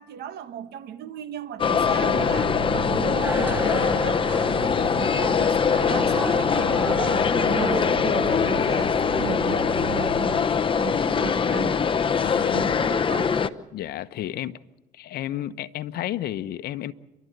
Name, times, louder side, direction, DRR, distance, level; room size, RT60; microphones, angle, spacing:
voice 1, 0.0-11.7 12.5-13.4, right 9 dB, 65° right, 1.5 m, -36 dB
sound 1, 1.6-13.5, left 6 dB, 30° left, 0.9 m, -23 dB
Boat Water vehicle, 1.6-10.5, right 5 dB, 80° right, 3.0 m, -35 dB
sound 2, 3.2-11.5, right 2 dB, 10° right, 0.9 m, -38 dB
voice 2, 12.2-12.7 13.7-14.6 14.9-16.9, left 12 dB, 60° left, 1.0 m, -32 dB
30.0 x 12.5 x 8.1 m
supercardioid pair, 90°, 18 cm